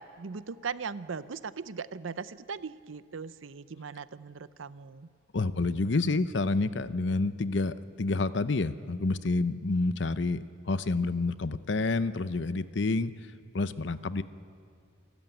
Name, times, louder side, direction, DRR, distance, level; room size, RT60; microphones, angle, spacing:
voice 1, 0.0-5.1, right 5 dB, 80° right, 16 dB, 0.6 m, -39 dB
voice 2, 5.3-13.1 13.5-14.2, left 3 dB, 65° left, 14 dB, 0.7 m, -28 dB
27.5 x 13.5 x 9.2 m, 2.2 s
head